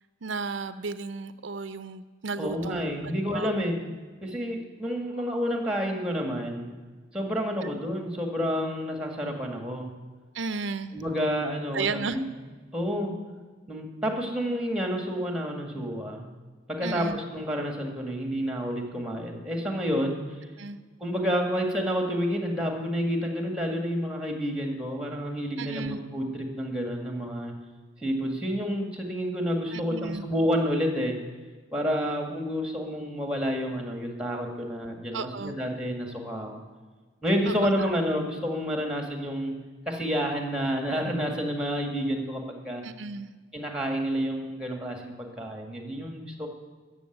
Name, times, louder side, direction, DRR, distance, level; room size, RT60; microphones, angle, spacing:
voice 1, 0.2-3.5 10.3-10.9 11.7-12.2 16.8-17.2 20.6-20.8 25.6-26.0 29.7-30.2 35.1-35.5 37.5-37.9 42.8-43.3, right 4 dB, 80° right, 11 dB, 0.6 m, -34 dB
voice 2, 2.4-3.8 4.2-6.7 7.1-9.9 10.9-12.2 12.7-13.1 13.7-16.3 16.7-20.2 21.0-27.5 28.0-31.2 31.7-36.6 37.2-39.6 39.9-42.8 43.5-46.5, equal, 5° right, 2 dB, 1.9 m, -29 dB
14.0 x 7.1 x 9.2 m, 1.4 s
head